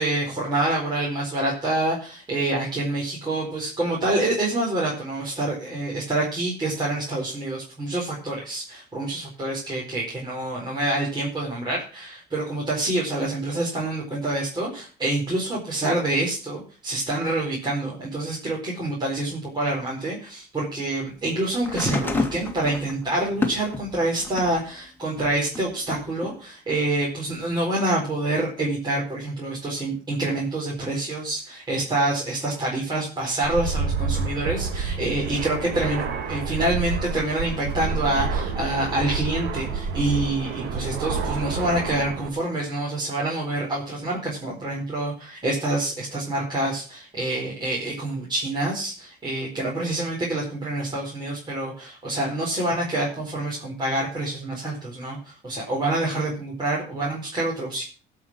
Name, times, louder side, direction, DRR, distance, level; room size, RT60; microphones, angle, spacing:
voice 1, 0.0-57.8, right 2 dB, 25° right, -4 dB, 4.4 m, -27 dB
sound 1, 21.6-24.6 25.1-26.3 27.3-27.4, left 3 dB, 10° left, 2.1 m, -30 dB
Fixed-wing aircraft airplane, 33.4-42.3, right 5 dB, 85° right, 2.0 m, -29 dB
17.0 x 5.8 x 6.2 m, 0.38 s
cardioid pair, 110°, 17 cm